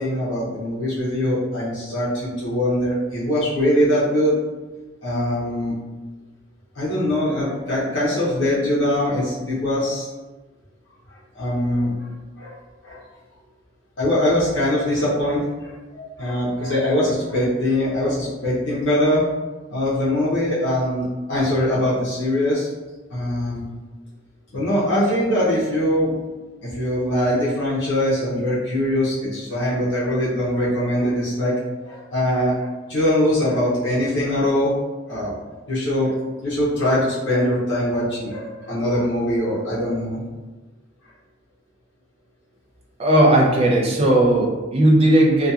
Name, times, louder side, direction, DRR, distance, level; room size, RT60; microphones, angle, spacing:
voice 1, 0.0-4.4 5.0-5.7 6.7-10.1 11.3-12.1 12.4-12.5 12.8-13.0 14.0-19.2 19.7-22.7 23.1-23.7 24.5-26.1 26.6-31.5 31.8-34.7 35.1-35.4 35.7-36.2 36.4-40.2, left 1 dB, 65° left, -9 dB, 0.7 m, -22 dB
voice 2, 43.0-45.5, right 1 dB, 30° right, -2 dB, 0.4 m, -16 dB
2.7 x 2.3 x 2.3 m, 1.2 s
head